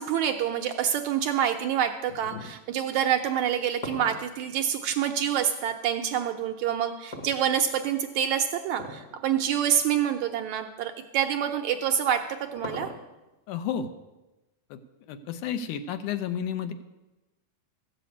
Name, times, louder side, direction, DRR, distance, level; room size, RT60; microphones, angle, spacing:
voice 1, 0.0-12.9, right 9 dB, 75° right, 6 dB, 1.8 m, -27 dB
voice 2, 2.2-2.5 13.5-13.9 14.7-14.8 15.1-16.7, left 8 dB, 75° left, 9 dB, 2.2 m, -32 dB
sound 1, 3.4-5.7 7.1-8.0 8.7-9.1 9.5-9.6 10.3-10.5 11.8-13.3, left 2 dB, 45° left, 1.1 m, -40 dB
14.5 x 7.8 x 8.3 m, 1.1 s
omnidirectional pair, 3.8 m